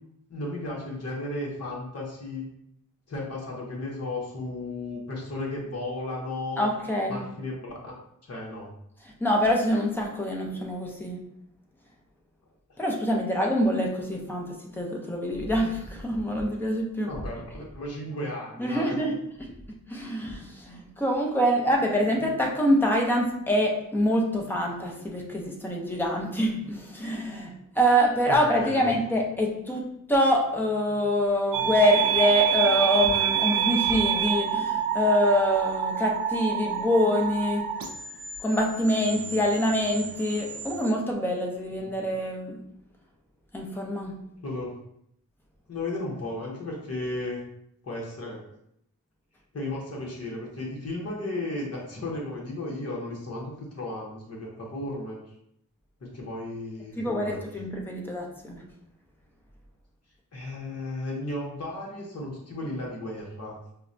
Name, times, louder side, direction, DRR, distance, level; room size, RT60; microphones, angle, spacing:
voice 1, 0.3-2.4 3.1-6.7 7.1-7.9 8.2-8.7 17.1-18.9 28.3-29.0 44.4-44.8 45.7-47.4 47.8-48.4 49.5-55.2 56.0-57.5 60.3-63.5, left 2 dB, 45° left, -3 dB, 1.0 m, -34 dB
voice 2, 6.6-7.3 9.0-11.2 12.8-17.1 18.6-19.5 19.9-37.7 38.4-42.6 43.5-44.2 57.0-58.6, equal, 5° left, 0 dB, 0.6 m, -25 dB
sound 1, 31.5-40.9, right 9 dB, 80° right, 0.6 m, -28 dB
5.4 x 2.1 x 2.6 m, 0.75 s
wide cardioid pair, 110°, 34 cm